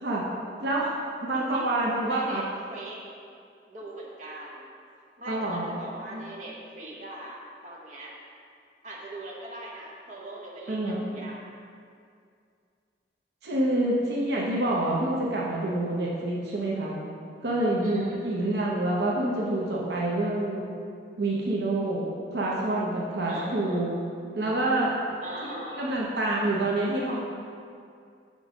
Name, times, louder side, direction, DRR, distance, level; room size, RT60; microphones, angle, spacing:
voice 1, 0.6-0.9 1.2-2.4 5.3-5.8 6.1-6.3 10.7-11.0 13.4-16.9 17.4-20.7 21.2-22.0 22.3-23.9 24.4-24.9 25.8-27.2, right 1 dB, 65° right, -4 dB, 0.8 m, -27 dB
voice 2, 1.3-1.8 2.1-2.4 2.7-3.0 3.7-4.7 5.2-8.2 8.8-11.4 17.8-18.6 23.3-23.8 25.2-25.9, right 1 dB, 40° right, -4 dB, 1.0 m, -41 dB
5.2 x 5.2 x 5.0 m, 2.3 s
head